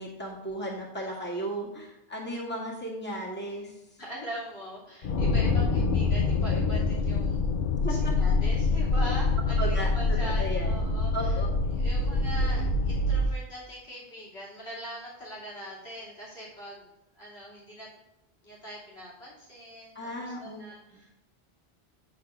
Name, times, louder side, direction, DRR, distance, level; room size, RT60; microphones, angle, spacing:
voice 1, 0.0-3.8 7.8-8.2 9.6-10.8 11.1-11.5 19.9-20.6 20.9-21.0, right 1 dB, 10° left, -4 dB, 1.9 m, -35 dB
voice 2, 4.0-7.4 7.9-11.4 11.7-16.9 17.2-17.9 18.4-21.1, equal, 70° left, -6 dB, 2.9 m, -42 dB
sound 1, 5.0-13.3, left 3 dB, 55° left, 0.8 m, -25 dB
9.0 x 4.2 x 5.4 m, 0.95 s
omnidirectional pair, 1.1 m